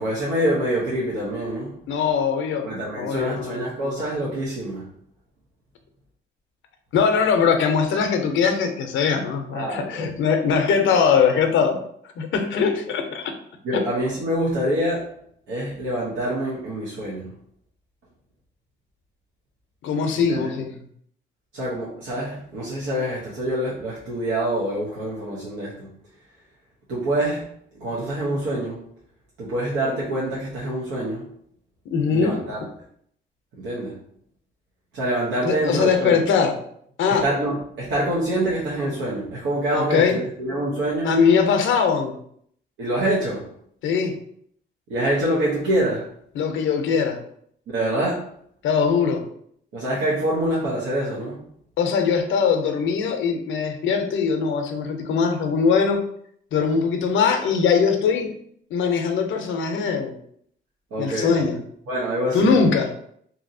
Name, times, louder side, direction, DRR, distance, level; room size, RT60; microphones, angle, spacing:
voice 1, 0.0-1.8 2.6-4.9 9.5-10.1 13.6-15.1 15.5-17.3 20.3-20.5 21.5-25.9 26.9-27.4 27.8-28.8 29.4-31.3 32.1-32.6 33.6-34.0 34.9-36.2 37.1-41.2 42.8-43.5 44.9-46.1 47.7-48.3 49.7-51.4 60.9-61.4 61.9-62.5, right 1 dB, 80° right, -6 dB, 0.8 m, -25 dB
voice 2, 1.9-2.7 3.0-3.6 6.9-11.8 12.2-13.3 13.7-13.8 19.8-20.7 31.9-32.3 35.4-36.6 37.0-37.2 39.7-40.2 41.0-42.1 43.8-44.1 46.4-47.2 48.6-49.2 51.8-56.0 56.5-58.3 58.7-60.2 61.0-61.6 62.3-62.9, left 6 dB, 75° left, 5 dB, 0.6 m, -21 dB
2.8 x 2.7 x 2.6 m, 0.65 s
cardioid pair, 90°, 20 cm